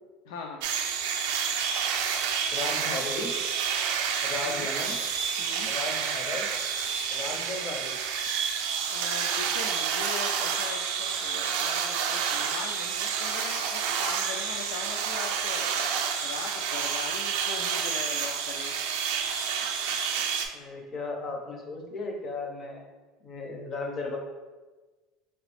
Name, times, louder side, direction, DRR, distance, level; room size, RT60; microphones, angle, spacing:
voice 1, 0.2-0.6 4.4-4.7 5.4-5.7 8.9-18.8, left 5 dB, 85° left, 2 dB, 0.4 m, -40 dB
sound 1, 0.6-20.4, right 7 dB, 80° right, 0.4 m, -29 dB
voice 2, 2.5-3.3 4.2-5.0 5.7-6.5 7.1-8.0 20.5-22.8 23.2-24.2, left 3 dB, 25° left, 1 dB, 0.5 m, -35 dB
3.8 x 3.0 x 3.1 m, 1.3 s
cardioid pair, 175°, 0 cm